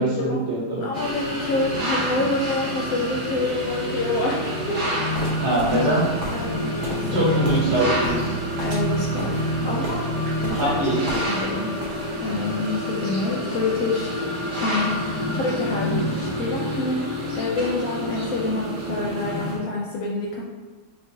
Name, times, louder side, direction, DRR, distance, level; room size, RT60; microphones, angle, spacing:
voice 1, 0.0-0.9 5.4-6.1 7.1-8.3 10.5-11.0, right 1 dB, 50° right, -6 dB, 1.1 m, -23 dB
voice 2, 0.8-4.4 4.7-5.6 6.3-7.3 8.6-10.1 10.4-10.8 11.1-11.7 12.2-14.1 14.5-17.1 17.3-20.4, left 2 dB, 70° left, -3 dB, 0.9 m, -27 dB
sound 1, 0.9-19.6, equal, 30° right, 0.7 m, -27 dB
sound 2, 5.1-11.5 11.8-12.3, equal, 85° right, 1.5 m, -36 dB
4.4 x 2.4 x 2.7 m, 1.4 s
omnidirectional pair, 1.7 m